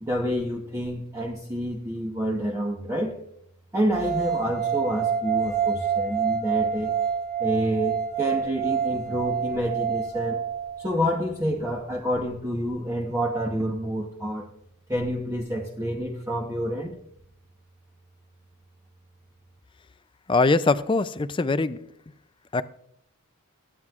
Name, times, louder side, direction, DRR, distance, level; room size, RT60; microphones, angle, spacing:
voice 1, 0.0-3.2 3.7-7.0 7.4-10.4 10.8-14.5 14.9-17.0, equal, 15° right, 0.9 m, -28 dB
sound 1, 3.9-11.0, right 7 dB, 40° right, 3.0 m, -27 dB
voice 2, 20.3-21.8 22.5-22.6, left 3 dB, 25° left, 0.4 m, -22 dB
22.5 x 9.1 x 2.4 m
head